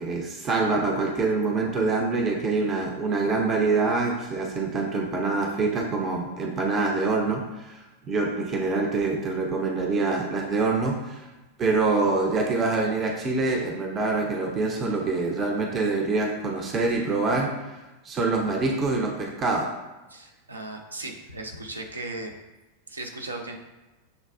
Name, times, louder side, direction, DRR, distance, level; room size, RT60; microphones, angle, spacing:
voice 1, 0.0-7.8 8.1-11.2 11.6-17.5 18.0-19.7, right 3 dB, 25° right, 0 dB, 0.5 m, -25 dB
voice 2, 20.1-22.3 22.9-23.6, right 2 dB, 80° right, 2 dB, 0.5 m, -37 dB
6.7 x 2.3 x 2.3 m, 1.1 s
figure-of-eight pair, 90°, 0 cm